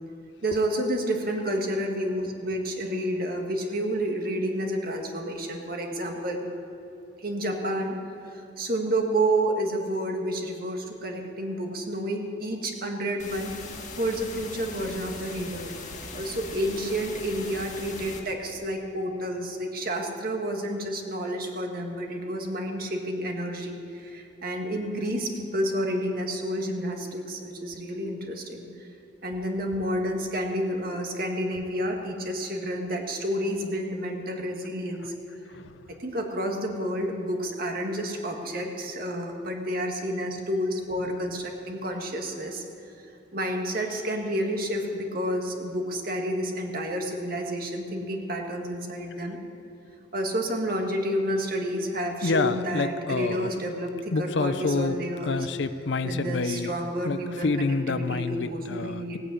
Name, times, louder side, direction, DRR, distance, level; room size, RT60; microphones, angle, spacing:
voice 1, 0.4-6.5 7.2-8.0 8.2-15.7 16.1-28.9 29.2-35.1 36.0-42.6 43.0-43.1 43.3-49.4 50.1-55.5 56.0-59.2, right 1 dB, 50° right, 2 dB, 1.8 m, -30 dB
sound 1, 13.2-18.2, left 3 dB, 40° left, 1.7 m, -40 dB
voice 2, 35.5-35.9 52.2-53.5 54.1-55.0 55.2-56.7 57.0-59.2, left 3 dB, 65° left, 12 dB, 0.6 m, -28 dB
17.5 x 8.9 x 8.4 m, 2.9 s
head